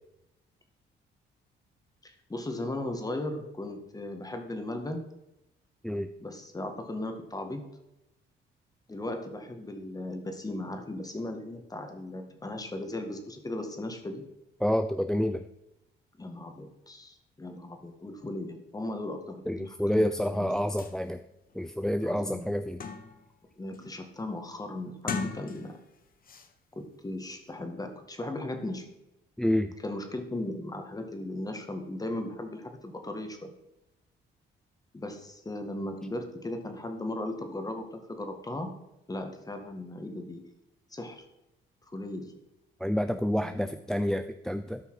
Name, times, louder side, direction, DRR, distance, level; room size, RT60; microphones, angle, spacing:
voice 1, 2.0-5.1 6.2-7.6 8.9-14.2 16.2-20.5 22.0-22.5 23.6-25.7 26.7-28.9 29.8-33.5 34.9-38.7 39.1-40.5 40.9-41.2 41.9-42.3 43.4-43.6, left 1 dB, 20° left, 5 dB, 1.7 m, -37 dB
voice 2, 14.6-15.4 19.5-21.2 21.6-22.8 29.4-29.7 42.8-44.8, equal, 5° left, 9 dB, 0.4 m, -28 dB
sound 1, 20.5-20.6 20.8-21.0 21.5-21.6 22.0-23.3 23.7-24.1 24.9-25.9 26.2-26.5, left 5 dB, 45° left, 1.0 m, -38 dB
13.0 x 5.5 x 4.8 m, 0.88 s
cardioid pair, 90°, 20 cm